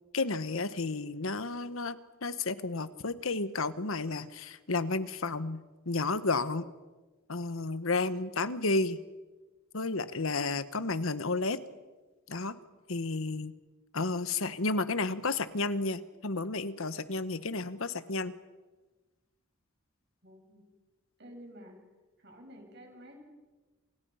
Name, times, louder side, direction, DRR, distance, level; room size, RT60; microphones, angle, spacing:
voice 1, 0.1-6.7 7.3-9.0 9.7-11.6 12.3-12.6 12.9-13.5 13.9-18.3, left 3 dB, 75° left, 13 dB, 1.3 m, -32 dB
voice 2, 20.2-20.6 21.2-21.8 22.2-23.2, equal, 55° right, 3 dB, 7.2 m, -50 dB
28.5 x 28.0 x 5.7 m, 1.2 s
head